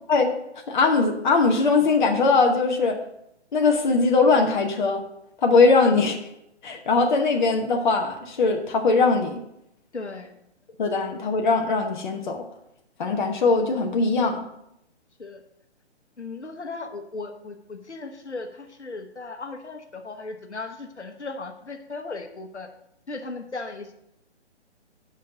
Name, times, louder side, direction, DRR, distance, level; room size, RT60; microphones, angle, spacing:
voice 1, 0.7-3.0 3.5-5.0 5.4-6.2 6.6-9.4 10.8-12.4 13.0-14.4, left 4 dB, 40° left, 3 dB, 0.9 m, -20 dB
voice 2, 9.9-10.4 15.2-15.4 16.2-22.7 23.1-23.9, left 3 dB, 75° left, 4 dB, 1.1 m, -36 dB
8.5 x 5.6 x 5.0 m, 0.80 s
figure-of-eight pair, 135°, 35 cm